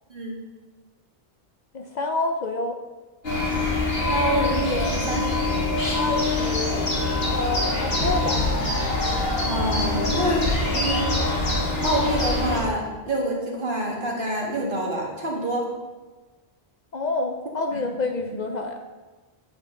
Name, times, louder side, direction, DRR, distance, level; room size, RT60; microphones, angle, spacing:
voice 1, 1.7-2.8 4.7-5.0 6.0-6.9 7.2-8.4 16.9-18.8, left 3 dB, 50° left, 4 dB, 0.7 m, -28 dB
sound 1, 3.2-12.6, left 2 dB, 75° left, 2.3 m, -24 dB
voice 2, 4.1-5.7 9.5-11.2 11.8-15.7 17.7-17.8 18.3-18.4, right 1 dB, 55° right, -2 dB, 2.0 m, -27 dB
9.1 x 8.5 x 3.8 m, 1.3 s
omnidirectional pair, 1.0 m